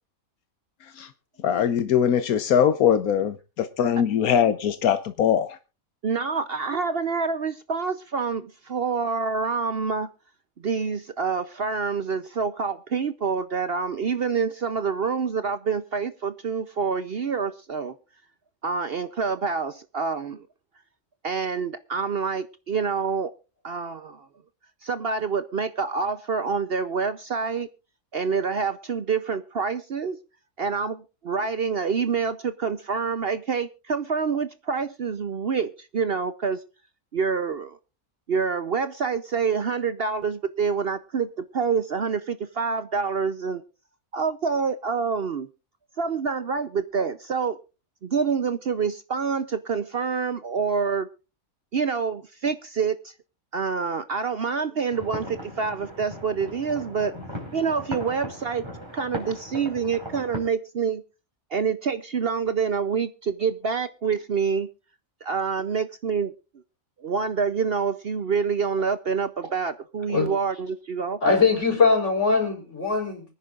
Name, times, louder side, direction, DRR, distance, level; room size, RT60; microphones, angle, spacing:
voice 1, 1.4-5.5, left 8 dB, 80° left, 1.3 m, -21 dB
voice 2, 6.0-10.1 10.6-17.9 18.6-20.4 21.2-23.3 23.6-24.3 24.8-27.7 28.1-30.2 30.6-36.6 37.1-37.8 38.3-43.6 44.1-45.5 46.0-47.6 48.0-51.1 51.7-53.1 53.5-57.1 57.5-58.7 58.9-61.0 61.5-64.7 65.2-66.3 67.0-71.2, right 5 dB, 50° right, 0.8 m, -27 dB
sound 1, 54.9-60.4, equal, 20° right, 5.3 m, -38 dB
voice 3, 71.2-73.2, left 4 dB, 55° left, 4.6 m, -21 dB
24.5 x 10.0 x 2.4 m
omnidirectional pair, 1.5 m